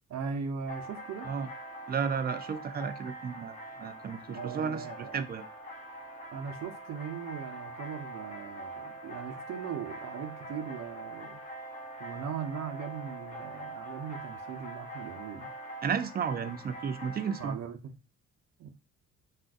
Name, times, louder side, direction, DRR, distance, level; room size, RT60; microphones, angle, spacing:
voice 1, 0.1-1.3 4.3-5.1 6.3-11.4 12.0-15.5 17.4-17.9 18.6-18.7, right 7 dB, 60° right, 0.7 m, -39 dB
sound 1, 0.7-17.5, right 1 dB, 25° left, 1.3 m, -43 dB
voice 2, 1.9-5.4 15.8-17.6, right 6 dB, 30° right, 0.4 m, -33 dB
3.6 x 2.5 x 2.5 m
cardioid pair, 90°, 30 cm